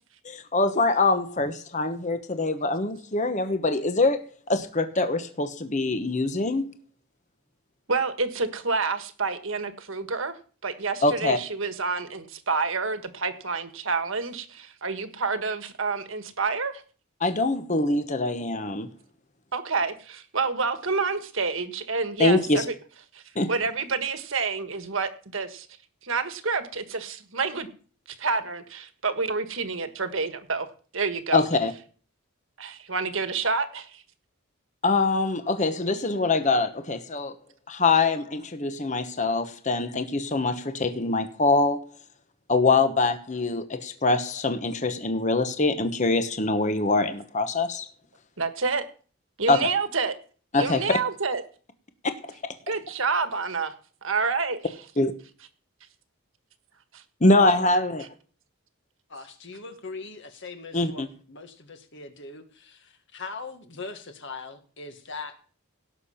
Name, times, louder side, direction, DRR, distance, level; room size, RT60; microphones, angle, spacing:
voice 1, 0.2-4.2 4.5-6.7 11.0-11.4 17.2-18.9 22.2-22.6 23.3-23.5 31.3-31.7 34.8-37.3 37.7-41.8 42.5-47.9 49.5-49.6 50.5-50.8 52.2-52.5 55.0-55.1 57.2-58.0 60.7-61.1, left 3 dB, 35° left, 9 dB, 1.1 m, -24 dB
voice 2, 7.9-10.3 10.6-16.8 19.5-22.7 23.1-25.7 26.0-27.7 28.2-30.7 30.9-31.4 32.6-34.0 48.4-48.8 49.4-50.1 50.6-51.4 52.7-53.7 54.0-54.7 56.9-57.0, right 4 dB, 65° right, 9 dB, 1.6 m, -28 dB
voice 3, 59.1-65.4, left 4 dB, 55° left, 7 dB, 1.8 m, -40 dB
17.5 x 6.7 x 5.7 m, 0.40 s
head